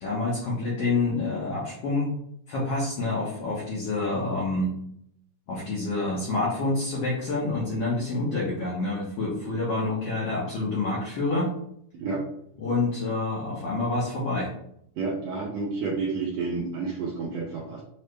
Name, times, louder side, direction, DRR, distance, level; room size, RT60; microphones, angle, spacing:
voice 1, 0.0-2.1 2.5-4.7 5.5-11.5 12.6-14.5, left 2 dB, 70° left, -5 dB, 1.5 m, -27 dB
voice 2, 15.0-17.8, right 4 dB, 85° right, -4 dB, 1.5 m, -30 dB
6.2 x 2.1 x 3.2 m, 0.72 s
omnidirectional pair, 3.8 m